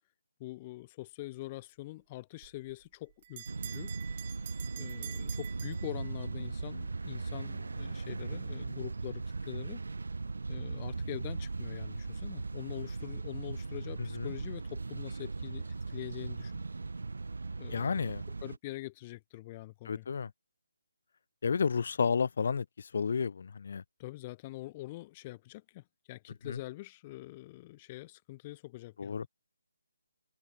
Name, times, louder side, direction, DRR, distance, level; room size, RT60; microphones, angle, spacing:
voice 1, 0.4-3.9 4.8-9.8 10.5-16.5 17.6-20.1 24.0-29.3, left 18 dB, 20° left, 3.0 m, -44 dB
Bell, 2.4-6.5, right 11 dB, 30° right, 0.9 m, -48 dB
sound 1, 3.5-18.6, right 3 dB, 75° right, 0.5 m, -38 dB
voice 2, 17.7-18.2 19.9-20.3 21.4-23.8 26.5-26.6 29.0-29.3, left 6 dB, 50° left, 0.4 m, -31 dB
hypercardioid pair, 165°, 0 cm